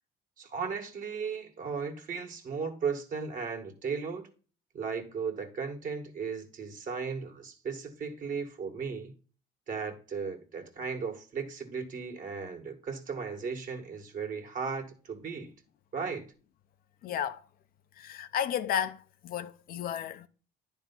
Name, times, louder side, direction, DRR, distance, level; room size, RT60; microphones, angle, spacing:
voice 1, 0.4-4.2 4.7-9.1 9.7-15.5 15.9-16.3, right 5 dB, 50° right, 1.9 m, -36 dB
voice 2, 17.0-17.4 18.0-20.3, left 9 dB, 60° left, 0.6 m, -33 dB
10.5 x 3.6 x 5.5 m
cardioid pair, 110°, 17 cm